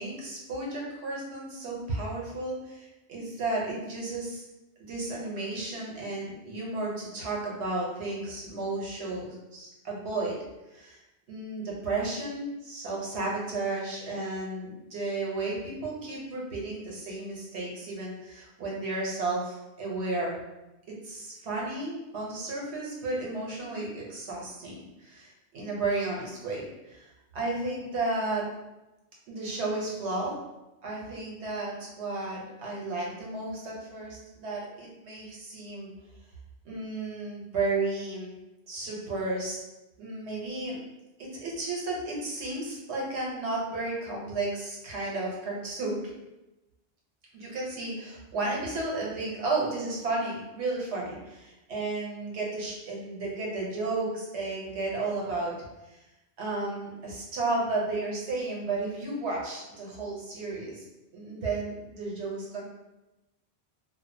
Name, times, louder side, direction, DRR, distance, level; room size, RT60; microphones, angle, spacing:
voice 1, 0.0-4.4 4.8-10.4 10.7-11.0 11.3-20.4 21.0-27.1 27.3-28.4 29.3-30.3 30.8-35.9 36.6-38.3 38.7-39.6 40.0-40.8 41.3-46.0 47.3-55.6 55.9-56.0 56.4-60.8 61.1-62.6, right 2 dB, 85° right, -3 dB, 1.0 m, -33 dB
2.4 x 2.0 x 2.6 m, 0.99 s
omnidirectional pair, 1.1 m